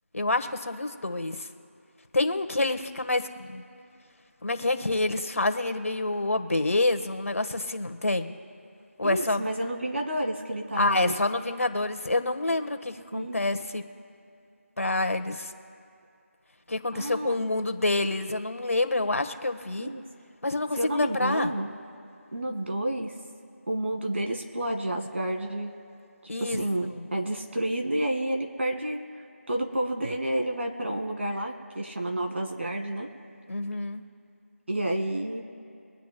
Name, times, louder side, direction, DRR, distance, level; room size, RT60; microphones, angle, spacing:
voice 1, 0.1-1.5 2.1-3.6 4.4-8.4 9.0-9.5 10.8-13.8 14.8-15.5 16.7-19.9 20.4-21.5 26.3-26.6 27.0-27.1 33.5-34.0, left 2 dB, 70° left, 7 dB, 1.3 m, -27 dB
voice 2, 9.0-11.2 13.1-13.4 16.9-17.4 19.8-20.1 20.8-21.7 22.3-23.2 23.7-25.7 26.4-29.0 29.5-33.1 34.7-35.4, right 1 dB, 55° right, 2 dB, 1.9 m, -30 dB
24.0 x 9.4 x 2.2 m, 2.5 s
figure-of-eight pair, 170°, 8 cm